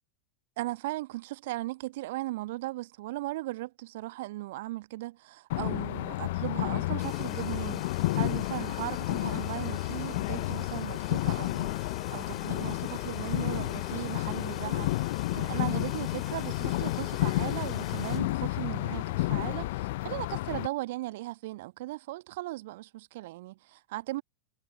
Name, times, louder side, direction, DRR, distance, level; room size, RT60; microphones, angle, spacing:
voice 1, 0.6-24.2, right 18 dB, 50° right, 1.3 m, -37 dB
sound 1, 5.5-20.7, left 19 dB, 50° left, 0.9 m, -31 dB
sound 2, 7.0-18.2, left 9 dB, 25° left, 6.0 m, -45 dB
figure-of-eight pair, 90°, 0 cm